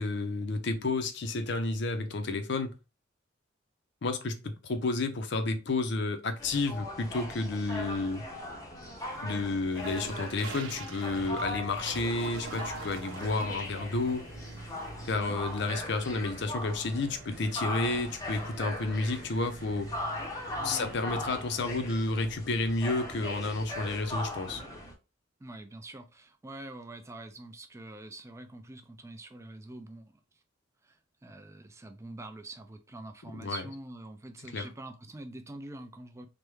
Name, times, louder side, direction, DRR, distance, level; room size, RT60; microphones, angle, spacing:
voice 1, 0.0-2.8 4.0-8.2 9.2-14.3 15.1-19.9 20.6-24.6 33.3-33.6 34.5-34.7, left 3 dB, 60° left, 0.6 m, -31 dB
sound 1, 6.4-24.9, left 1 dB, 20° left, 0.7 m, -40 dB
sound 2, 7.2-8.2 8.6-20.9, right 4 dB, 90° right, 0.6 m, -47 dB
sound 3, 11.0-24.6, right 2 dB, 60° right, 0.8 m, -47 dB
voice 2, 20.6-20.9 25.4-30.2 30.8-36.3, right 2 dB, 15° right, 0.4 m, -45 dB
3.4 x 2.2 x 3.1 m
head